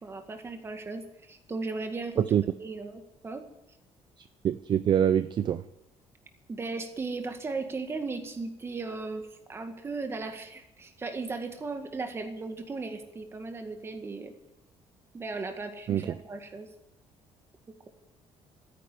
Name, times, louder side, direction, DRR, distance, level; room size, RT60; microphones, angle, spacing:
voice 1, 0.0-3.4 6.5-14.3 15.1-16.7, right 3 dB, 20° right, 6 dB, 2.0 m, -37 dB
voice 2, 4.4-5.6 15.9-16.2, right 9 dB, 40° right, 13 dB, 0.5 m, -25 dB
13.5 x 10.0 x 9.7 m, 0.88 s
cardioid pair, 160°, 12 cm